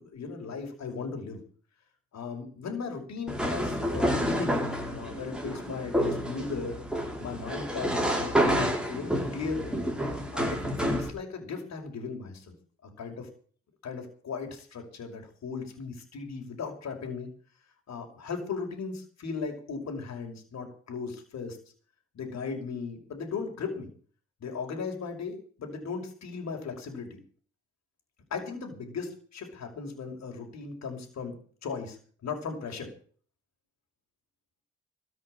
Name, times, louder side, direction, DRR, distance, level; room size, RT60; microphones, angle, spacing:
voice 1, 0.0-1.4 2.1-6.8 7.2-9.8 10.3-12.5 12.8-13.3 13.8-17.3 17.9-21.6 22.1-23.9 24.4-27.2 28.3-31.4 31.6-32.9, left 5 dB, 60° left, 2 dB, 5.8 m, -37 dB
sound 1, 3.3-11.1, equal, 5° right, 5.5 m, -29 dB
14.5 x 8.1 x 10.0 m, 0.43 s
cardioid pair, 90°, 30 cm